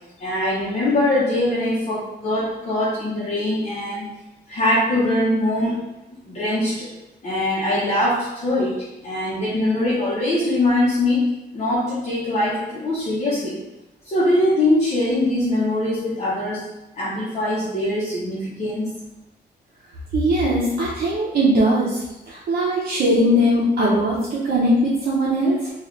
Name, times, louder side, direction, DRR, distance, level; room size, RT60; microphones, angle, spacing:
voice 1, 0.2-4.1 4.5-5.8 6.1-6.9 7.2-11.3 11.5-13.6 14.0-16.7 16.9-18.9, left 1 dB, 40° left, -9 dB, 0.8 m, -22 dB
voice 2, 20.1-25.7, equal, 60° right, -7 dB, 0.7 m, -20 dB
3.2 x 2.4 x 3.8 m, 0.94 s
wide cardioid pair, 150°, 18 cm